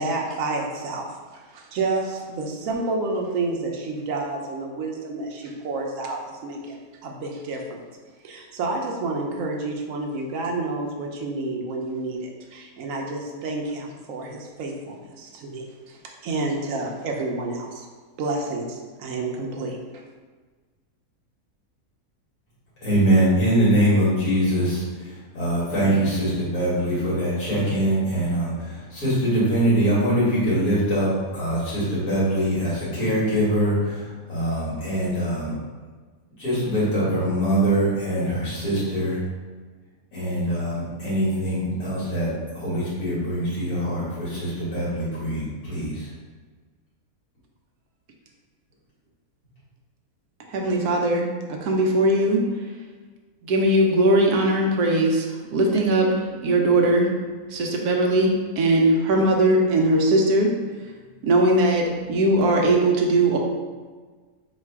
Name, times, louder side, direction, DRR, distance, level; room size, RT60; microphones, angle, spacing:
voice 1, 0.0-7.8 8.2-17.9 18.2-20.0, right 3 dB, 65° right, 1 dB, 1.0 m, -30 dB
voice 2, 22.8-35.5 36.4-39.2 40.1-42.3 42.5-46.1, right 1 dB, 80° left, -10 dB, 2.1 m, -23 dB
voice 3, 50.5-52.4 53.4-55.3 55.5-56.1 56.4-57.1 57.5-60.5 61.2-63.4, right 1 dB, 90° right, 1 dB, 1.2 m, -20 dB
4.1 x 2.4 x 4.6 m, 1.4 s
omnidirectional pair, 1.6 m